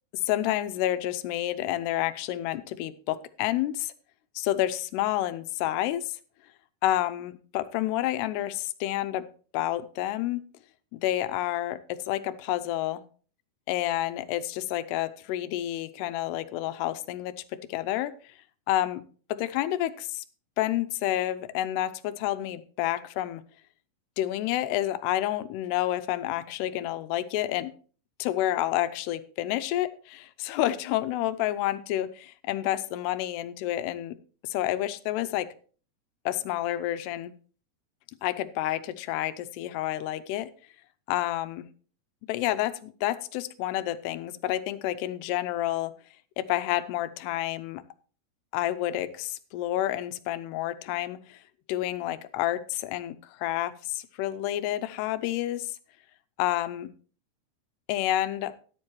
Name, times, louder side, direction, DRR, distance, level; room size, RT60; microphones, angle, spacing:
voice 1, 0.3-3.9 4.4-6.1 6.8-9.3 9.5-10.4 10.9-13.0 13.7-17.3 17.7-18.1 18.7-19.0 19.3-20.2 20.6-23.4 24.2-27.7 28.2-34.1 34.4-35.5 36.3-37.3 38.2-40.5 41.1-41.7 42.3-45.9 46.4-47.8 48.5-51.4 51.7-55.7 56.4-56.9 57.9-58.5, left 14 dB, 85° left, 13 dB, 2.7 m, -29 dB
13.5 x 10.5 x 3.0 m, 0.41 s
omnidirectional pair, 4.8 m